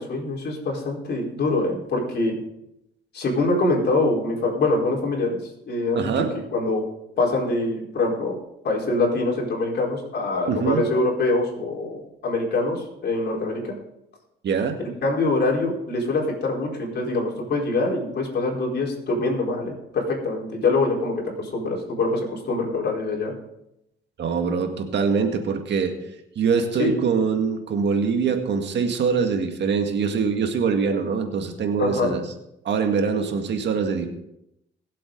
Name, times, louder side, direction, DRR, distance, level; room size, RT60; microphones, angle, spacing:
voice 1, 0.0-2.3 3.1-5.4 5.7-6.8 7.2-8.4 8.6-13.7 15.0-23.3 26.8-27.0 31.8-32.2, left 2 dB, 55° left, -1 dB, 4.4 m, -24 dB
voice 2, 5.9-6.3 10.5-10.8 14.4-14.8 24.2-26.0 26.4-32.2 32.7-34.1, right 5 dB, 65° right, 5 dB, 1.9 m, -23 dB
21.5 x 7.8 x 3.9 m, 0.83 s
cardioid pair, 90°, 20 cm